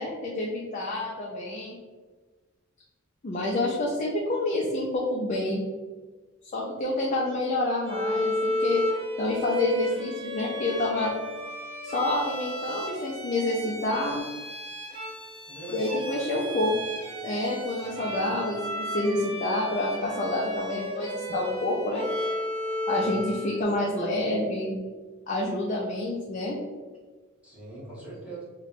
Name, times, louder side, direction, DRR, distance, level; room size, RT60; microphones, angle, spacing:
voice 1, 0.0-1.8 3.2-5.6 6.5-8.8 9.2-11.1 11.8-14.3 15.7-16.7 17.2-22.1 22.9-24.8 25.3-26.6, left 2 dB, 35° left, -3 dB, 0.5 m, -28 dB
Bowed string instrument, 7.8-23.6, left 1 dB, 30° right, 0.6 m, -33 dB
voice 2, 15.4-16.6 17.8-18.3 22.9-23.2 27.4-28.4, right 1 dB, 5° right, -8 dB, 1.1 m, -42 dB
2.9 x 2.2 x 4.0 m, 1.3 s
head